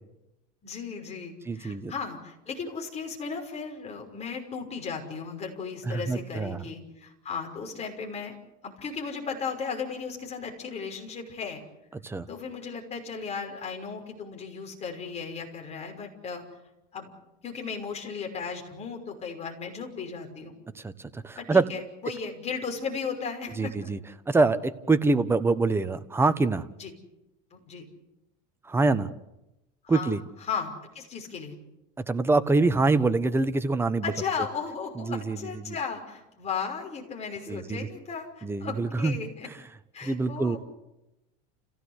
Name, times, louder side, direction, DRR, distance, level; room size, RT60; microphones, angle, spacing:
voice 1, 0.6-8.4 8.6-11.6 12.3-16.4 16.9-17.1 17.4-20.6 21.4-23.9 26.8-26.9 27.5-27.9 29.8-30.1 30.5-31.6 34.0-39.5 39.9-40.6, left 5 dB, 30° left, 3 dB, 5.8 m, -36 dB
voice 2, 1.5-1.9 5.8-6.6 12.0-12.3 20.7-21.7 23.6-24.0 24.3-26.7 28.6-29.1 29.9-30.2 32.0-34.1 35.0-35.7 37.5-37.9 38.4-39.2 40.0-40.6, right 3 dB, 10° right, 10 dB, 1.3 m, -25 dB
29.5 x 16.5 x 8.3 m, 0.93 s
supercardioid pair, 120°, 21 cm